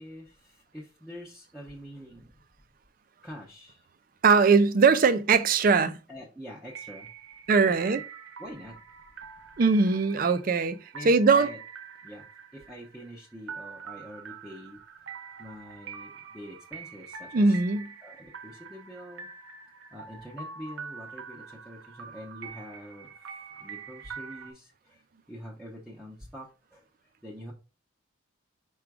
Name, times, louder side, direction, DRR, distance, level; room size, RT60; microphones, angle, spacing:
voice 1, 0.0-2.3 3.2-3.9 6.1-7.1 7.7-8.0 8.4-8.8 10.9-11.6 12.0-12.3 12.5-14.8 15.4-17.6 18.0-19.3 19.9-25.0 25.3-27.5, equal, 5° right, 0.6 m, -45 dB
voice 2, 4.2-6.0 7.5-8.0 9.6-10.8 11.1-11.5 17.3-17.9, right 4 dB, 45° right, 0.4 m, -21 dB
sound 1, 6.7-24.5, right 6 dB, 70° right, 0.7 m, -45 dB
4.9 x 2.3 x 4.7 m
head